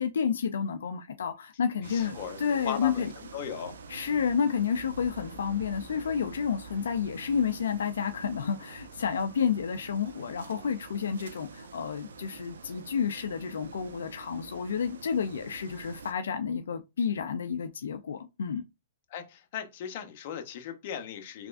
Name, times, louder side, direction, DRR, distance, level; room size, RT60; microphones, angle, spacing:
voice 1, 0.0-3.1 3.9-18.6, left 7 dB, 80° left, 0.4 m, -30 dB
voice 2, 1.8-3.8 19.1-21.5, left 8 dB, 45° left, 0.8 m, -38 dB
sound 1, 1.8-16.1, right 4 dB, 80° right, 0.6 m, -46 dB
3.5 x 3.2 x 2.5 m
hypercardioid pair, 150°, 0 cm